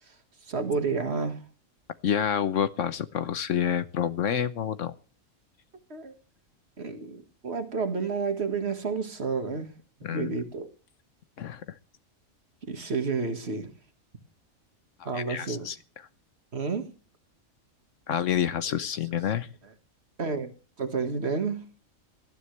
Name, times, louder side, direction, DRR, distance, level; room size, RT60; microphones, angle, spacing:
voice 1, 0.4-1.4 5.9-6.1 6.8-9.7 10.1-10.7 12.7-13.7 15.1-15.7 16.5-16.9 20.2-20.5 20.8-21.7, right 4 dB, 50° right, 1.9 m, -30 dB
voice 2, 2.0-4.9 10.0-10.4 11.4-11.8 15.0-15.8 18.1-19.5, left 9 dB, 65° left, 1.1 m, -28 dB
18.0 x 12.5 x 3.3 m
omnidirectional pair, 1.4 m